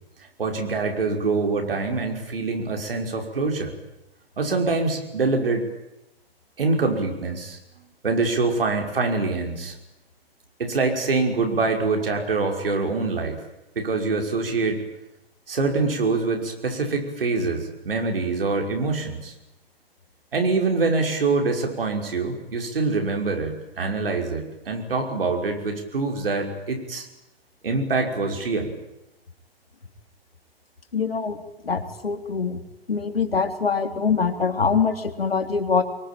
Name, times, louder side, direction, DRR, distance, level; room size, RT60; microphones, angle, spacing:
voice 1, 0.4-3.7 4.4-5.7 6.6-7.6 8.0-9.7 10.6-13.4 13.8-14.8 15.5-19.3 20.3-27.1 27.6-28.7, right 3 dB, 65° right, 3 dB, 5.8 m, -25 dB
voice 2, 30.9-31.4 31.6-32.6 32.9-35.8, left 5 dB, 70° left, 6 dB, 3.4 m, -24 dB
26.0 x 23.0 x 9.2 m, 0.92 s
figure-of-eight pair, 115°, 30 cm